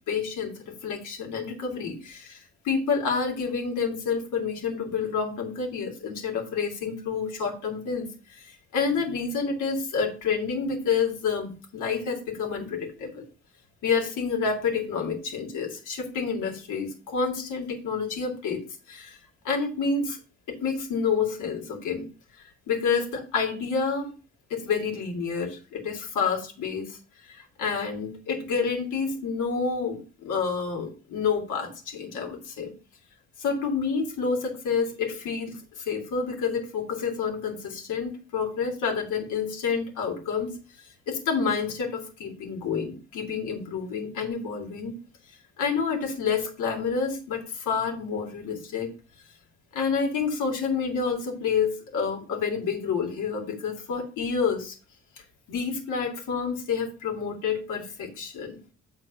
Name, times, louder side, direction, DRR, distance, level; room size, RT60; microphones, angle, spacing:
voice 1, 0.1-13.2 13.8-18.6 18.9-19.2 19.4-20.2 20.5-22.0 22.7-24.1 24.5-27.0 27.2-32.7 33.4-40.5 40.8-44.9 45.6-48.9 49.7-54.7 55.5-58.6, left 5 dB, 85° left, 1 dB, 2.6 m, -29 dB
7.4 x 4.5 x 5.3 m, 0.35 s
cardioid pair, 90°, 30 cm